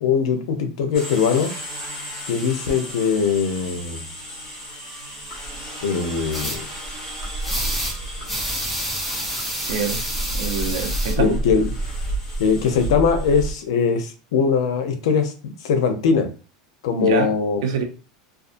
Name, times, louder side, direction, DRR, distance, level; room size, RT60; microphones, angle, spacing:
voice 1, 0.0-1.5 2.3-4.1 5.8-6.6 11.2-11.7 12.4-16.3 16.8-17.6, left 6 dB, 80° left, 7 dB, 0.6 m, -21 dB
sound 1, 0.9-13.5, right 1 dB, 20° left, 1.2 m, -31 dB
sound 2, 6.3-6.6 7.4-8.0 8.3-11.1, equal, ahead, 0.6 m, -28 dB
voice 2, 9.7-10.0 10.3-11.4 17.0-17.3 17.6-17.8, right 6 dB, 80° right, 3 dB, 0.7 m, -25 dB
2.6 x 2.4 x 2.5 m, 0.35 s
supercardioid pair, 160°, 3 cm